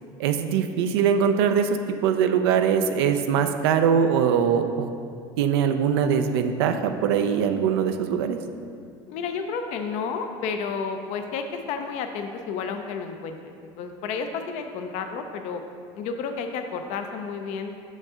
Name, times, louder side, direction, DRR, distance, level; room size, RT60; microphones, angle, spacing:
voice 1, 0.2-4.9 5.4-8.4, right 7 dB, 90° right, 7 dB, 0.4 m, -22 dB
voice 2, 9.1-15.6 16.0-17.7, left 5 dB, 65° left, 6 dB, 0.5 m, -31 dB
6.3 x 5.3 x 3.6 m, 2.4 s
supercardioid pair, 95°, 13 cm